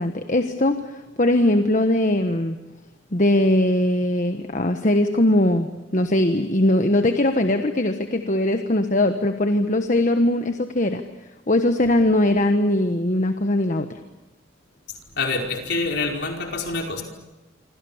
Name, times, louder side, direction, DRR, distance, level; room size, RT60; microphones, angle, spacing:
voice 1, 0.0-2.6 3.1-11.0 11.5-14.0, left 1 dB, 40° left, 7 dB, 1.3 m, -20 dB
voice 2, 15.1-17.0, left 3 dB, 60° left, 2 dB, 5.1 m, -26 dB
27.5 x 25.5 x 7.3 m, 1.0 s
head